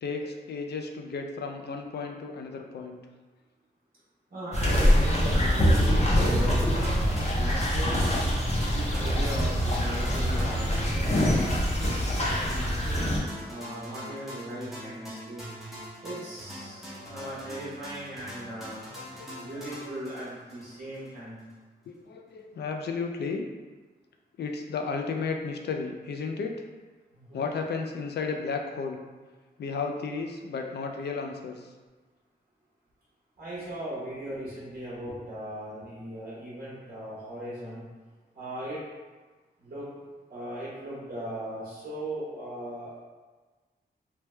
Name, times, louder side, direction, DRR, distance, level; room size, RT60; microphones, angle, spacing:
voice 1, 0.0-3.0 16.6-17.4 19.0-19.5 21.9-23.5 24.4-26.5 27.3-29.0 29.6-31.7, left 4 dB, 75° left, 3 dB, 0.4 m, -34 dB
voice 2, 4.3-8.1 8.7-11.6 12.2-13.1 13.4-15.4 16.0-18.8 19.3-21.4 27.1-27.5 33.4-37.8 38.3-38.8 39.6-39.9 40.3-43.0, right 1 dB, 60° right, -9 dB, 1.0 m, -38 dB
sound 1, 4.5-13.2, equal, 40° left, 0.7 m, -24 dB
sound 2, 5.7-21.1, equal, ahead, 0.8 m, -43 dB
3.2 x 2.2 x 3.1 m, 1.3 s
wide cardioid pair, 100°, 17 cm